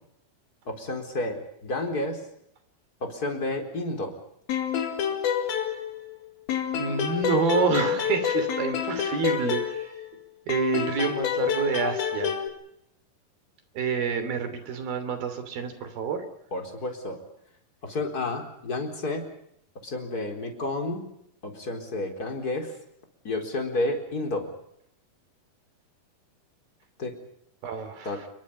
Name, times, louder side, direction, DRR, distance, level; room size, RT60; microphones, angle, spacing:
voice 1, 0.7-2.2 3.0-4.1 16.5-17.2 17.8-19.2 19.8-21.1 21.4-22.7 23.2-24.5 27.0-27.1 28.0-28.2, left 2 dB, 25° left, 4 dB, 4.3 m, -30 dB
sound 1, 4.5-6.2 6.5-10.1 10.5-12.5, left 8 dB, 80° left, 4.1 m, -28 dB
voice 2, 6.7-9.9 10.5-12.3 13.8-16.2 27.6-28.3, right 5 dB, 70° right, 10 dB, 4.8 m, -28 dB
28.0 x 23.0 x 5.5 m, 0.77 s
omnidirectional pair, 4.3 m